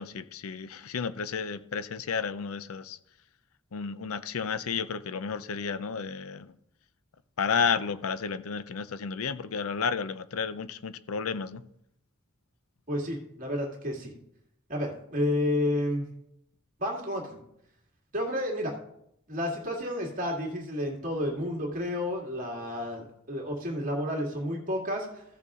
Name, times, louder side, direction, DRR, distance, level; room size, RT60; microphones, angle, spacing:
voice 1, 0.0-3.0 3.7-6.5 7.4-11.6, left 6 dB, 85° left, 0.6 m, -32 dB
voice 2, 12.9-14.1 14.7-16.1 16.8-17.4 18.1-18.8 19.3-25.2, left 1 dB, 40° right, 2.2 m, -31 dB
15.0 x 6.7 x 3.7 m
head